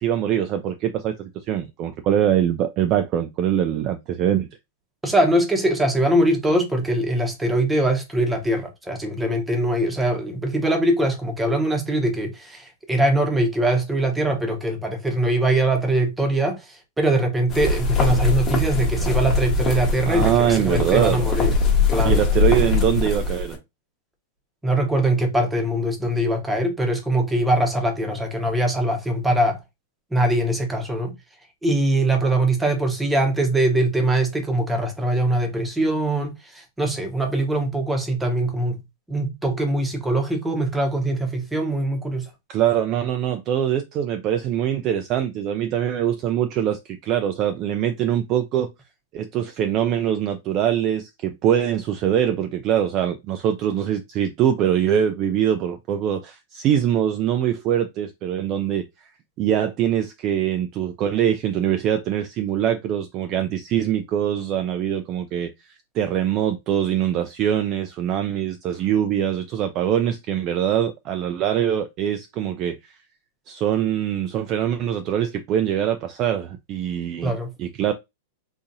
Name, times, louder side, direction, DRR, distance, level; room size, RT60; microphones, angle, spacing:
voice 1, 0.0-4.5 20.1-21.3 22.0-23.6 42.5-48.7 49.1-58.8 59.4-72.8 73.5-77.3 77.6-77.9, right 10 dB, 30° right, 0.3 m, -23 dB
voice 2, 5.0-21.5 21.9-22.2 24.6-29.6 30.1-31.2 31.6-42.3 77.2-77.5, right 1 dB, 5° right, 0.7 m, -22 dB
sound 1, 17.5-23.6, left 3 dB, 15° left, 0.9 m, -22 dB
3.9 x 2.8 x 2.5 m
supercardioid pair, 170°, 0 cm